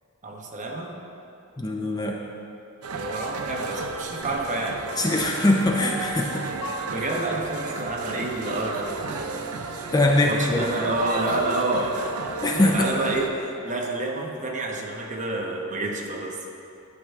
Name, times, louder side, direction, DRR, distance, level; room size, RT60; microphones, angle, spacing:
voice 1, 0.2-0.9 2.9-4.8 6.9-9.8 10.2-12.0 12.2-16.4, right 2 dB, 35° right, 0 dB, 1.0 m, -29 dB
voice 2, 1.6-2.2 5.0-6.5 9.9-10.7 12.4-12.9, left 2 dB, 15° left, 0 dB, 0.5 m, -22 dB
sound 1, 2.8-13.3, right 4 dB, 85° right, 0.6 m, -33 dB
Piano, 5.8-8.8 9.3-9.4, right 1 dB, 35° left, 2.2 m, -39 dB
11.5 x 6.9 x 3.6 m, 2.7 s
head